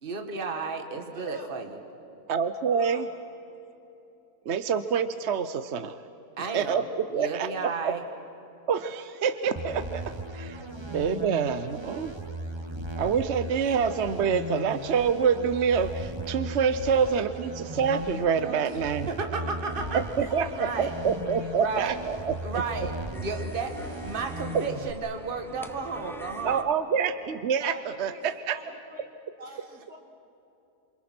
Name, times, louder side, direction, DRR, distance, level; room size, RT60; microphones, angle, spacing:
voice 1, 0.0-1.8 6.4-8.0 19.1-20.0 20.5-20.9 21.6-22.0 22.4-22.9 23.2-26.7, right 4 dB, 35° right, 4 dB, 1.9 m, -33 dB
voice 2, 1.1-1.5 2.7-3.0 3.5-3.6 18.4-18.6 19.3-19.5 19.8-20.4 21.2-21.5 26.0-26.2 27.6-29.1 29.4-30.0, right 1 dB, 75° right, 1 dB, 3.8 m, -45 dB
voice 3, 2.3-3.1 4.5-6.0 6.5-7.9 8.7-12.1 12.9-19.1 19.9-20.5 20.8-22.3 24.5-24.6 26.4-28.6, right 6 dB, 55° right, 11 dB, 0.9 m, -27 dB
sound 1, 9.6-24.9, right 1 dB, 20° right, 1.1 m, -37 dB
sound 2, 19.7-26.6, equal, ahead, 0.7 m, -46 dB
28.5 x 27.5 x 6.1 m, 2.9 s
omnidirectional pair, 1.6 m